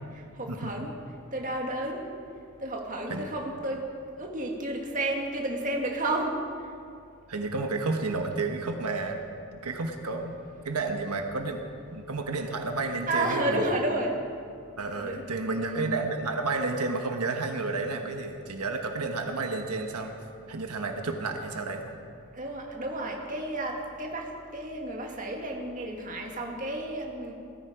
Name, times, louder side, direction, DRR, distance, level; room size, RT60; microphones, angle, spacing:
voice 1, 0.4-0.9 1.3-2.0 2.6-3.8 4.2-6.4 13.1-14.1 14.9-16.0 22.3-27.3, right 1 dB, 35° right, 1 dB, 1.9 m, -31 dB
voice 2, 7.3-9.2 9.5-10.3 10.6-11.6 11.9-13.7 14.8-20.1 20.5-21.9, right 3 dB, 90° right, 4 dB, 1.3 m, -31 dB
17.5 x 14.0 x 5.0 m, 2.4 s
head